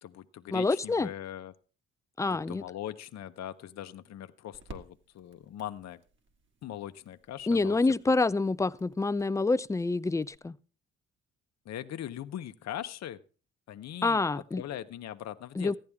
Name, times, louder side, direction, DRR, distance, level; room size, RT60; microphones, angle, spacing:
voice 1, 0.0-1.5 2.3-6.0 6.6-7.8 11.6-13.2 13.7-15.8, left 11 dB, 60° left, 0.8 m, -41 dB
voice 2, 0.5-1.1 2.2-2.6 7.5-10.6 14.0-14.6 15.6-15.7, left 3 dB, 10° left, 0.4 m, -27 dB
sound 1, 2.4-10.4, right 3 dB, 40° right, 1.9 m, -56 dB
14.5 x 11.0 x 3.5 m
cardioid pair, 90°, 30 cm